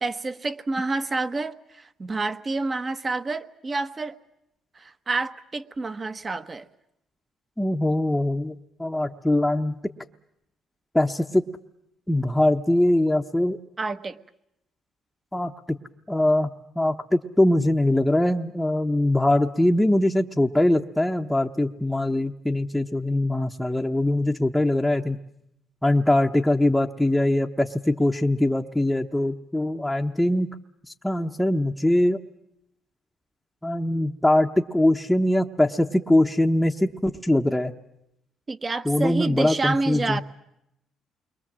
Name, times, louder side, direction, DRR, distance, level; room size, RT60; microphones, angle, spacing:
voice 1, 0.0-4.2 4.7-6.6 13.8-14.2 38.5-40.2, right 3 dB, 30° right, 11 dB, 1.1 m, -28 dB
voice 2, 7.6-8.5 8.8-9.7 10.9-11.4 12.1-13.6 15.3-15.5 16.1-16.5 16.8-25.2 25.8-30.5 31.0-32.2 33.6-37.7 38.8-40.2, left 1 dB, 5° left, 1 dB, 0.9 m, -22 dB
28.5 x 22.5 x 7.5 m, 0.81 s
cardioid pair, 85°, 0 cm